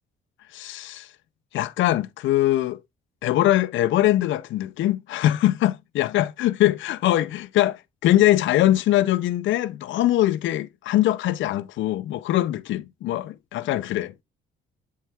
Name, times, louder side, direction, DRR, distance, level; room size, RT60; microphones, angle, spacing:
voice 1, 0.5-1.1 1.5-2.8 3.2-14.2, left 14 dB, 75° left, 0.5 m, -22 dB
7.5 x 5.6 x 2.3 m
cardioid pair, 90°, 20 cm